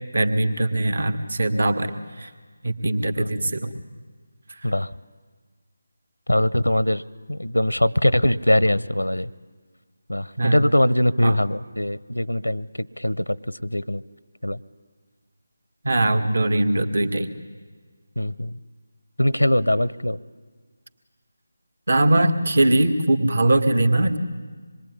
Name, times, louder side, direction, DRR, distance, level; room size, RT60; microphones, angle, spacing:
voice 1, 0.0-2.3 2.6-3.7 10.4-10.7 11.2-11.4 15.8-17.3 21.9-24.2, right 1 dB, 60° right, 8 dB, 2.1 m, -21 dB
voice 2, 3.2-3.5 4.6-4.9 6.3-7.0 7.3-9.3 10.1-14.0 14.4-14.6 18.2-18.5 19.2-20.2, left 1 dB, 90° left, 19 dB, 0.8 m, -22 dB
26.0 x 22.0 x 9.7 m, 1.5 s
figure-of-eight pair, 160°, 0 cm